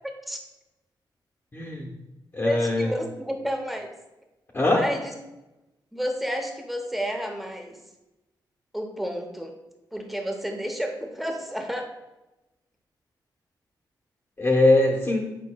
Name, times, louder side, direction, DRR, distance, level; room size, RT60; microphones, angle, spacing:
voice 1, 0.0-0.4 2.4-3.9 4.7-5.1 5.9-7.8 8.7-9.5 9.9-11.9, equal, ahead, 3 dB, 0.8 m, -31 dB
voice 2, 1.5-1.9 2.3-2.9 4.5-4.8 14.4-15.3, left 2 dB, 25° left, -1 dB, 0.9 m, -21 dB
8.3 x 5.1 x 2.3 m, 1.0 s
wide cardioid pair, 140°, 8 cm